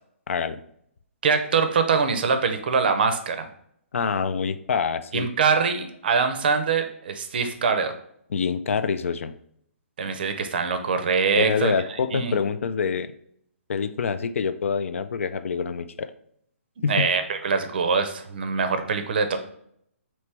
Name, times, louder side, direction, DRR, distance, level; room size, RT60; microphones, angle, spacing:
voice 1, 0.3-0.6 3.9-5.3 8.3-9.3 11.4-13.1 13.7-16.1 16.8-17.1, left 6 dB, 70° left, 11 dB, 0.3 m, -26 dB
voice 2, 1.2-3.5 5.1-7.9 10.0-11.7 12.1-12.3 16.8-19.4, right 5 dB, 45° right, 8 dB, 0.5 m, -23 dB
4.5 x 3.0 x 3.3 m, 0.69 s
hypercardioid pair, 165°, 7 cm